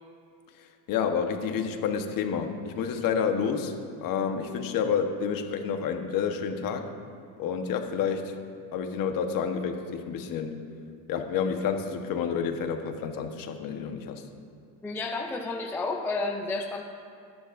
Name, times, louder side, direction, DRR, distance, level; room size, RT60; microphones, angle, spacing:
voice 1, 0.9-3.7 4.0-6.9 7.4-8.3 8.7-10.6 11.1-14.2, left 6 dB, 45° left, 5 dB, 1.2 m, -29 dB
voice 2, 14.8-16.8, left 3 dB, 5° left, 2 dB, 0.4 m, -31 dB
23.0 x 10.0 x 2.6 m, 2.5 s
cardioid pair, 135°, 45 cm